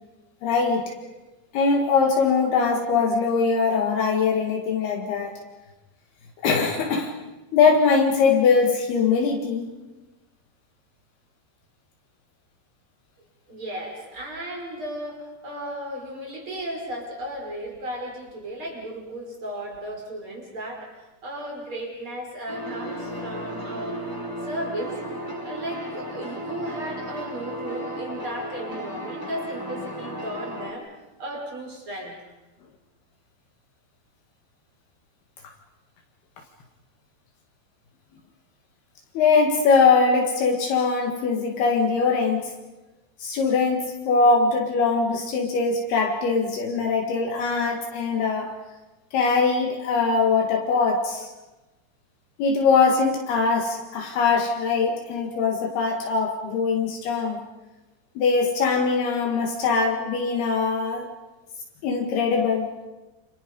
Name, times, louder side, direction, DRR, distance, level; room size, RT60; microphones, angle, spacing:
voice 1, 0.4-0.8 1.5-5.4 6.4-7.1 7.5-9.7 39.2-42.5 43.2-48.5 49.1-51.3 52.4-57.5 58.2-61.1 61.8-62.7, left 4 dB, 70° left, 1 dB, 3.8 m, -22 dB
voice 2, 13.5-24.0 24.4-25.0 25.4-30.9 31.2-32.1, right 1 dB, 30° right, 0 dB, 6.1 m, -35 dB
sound 1, 22.5-30.7, right 1 dB, 25° left, 0.4 m, -34 dB
29.0 x 28.0 x 5.4 m, 1.1 s
omnidirectional pair, 4.8 m